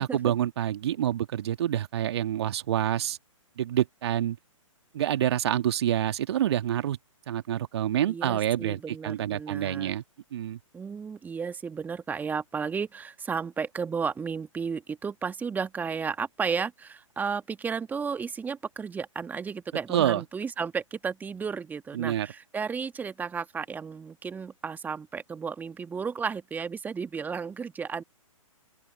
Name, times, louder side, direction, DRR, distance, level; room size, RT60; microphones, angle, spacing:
voice 1, 0.0-3.2 3.6-4.4 4.9-7.0 7.3-10.0 10.3-10.6 19.9-20.2 22.0-22.3, right 11 dB, 50° right, 2.0 m, -27 dB
voice 2, 8.1-9.9 10.7-28.0, right 6 dB, 10° right, 2.0 m, -33 dB
open air
figure-of-eight pair, 125°, 17 cm